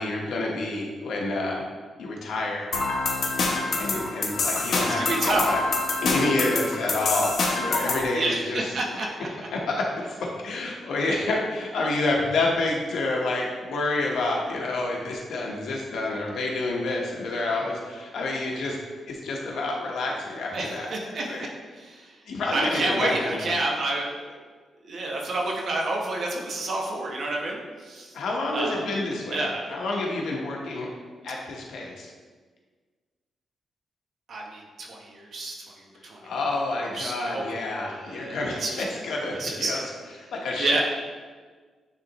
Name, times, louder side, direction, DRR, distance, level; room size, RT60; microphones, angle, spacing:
voice 1, 0.0-1.6 2.0-2.7 3.4-5.6 6.0-8.7 9.5-9.9 10.4-18.8 19.1-21.5 22.3-23.5 28.1-30.9 31.2-32.1 36.2-39.8 40.3-40.8, left 2 dB, 70° left, -1 dB, 1.0 m, -28 dB
sound 1, 2.7-8.1, left 3 dB, 50° left, 0.8 m, -26 dB
voice 2, 4.8-5.5 8.1-9.1 20.5-21.2 21.8-22.1 22.5-24.4 24.8-28.1 28.5-28.9 29.3-29.8 34.3-35.5 36.0-36.2 36.9-38.8 39.3-39.9 40.6-40.8, right 2 dB, 45° right, -1 dB, 0.9 m, -29 dB
9.6 x 3.4 x 2.9 m, 1.5 s
wide cardioid pair, 180°, 0 cm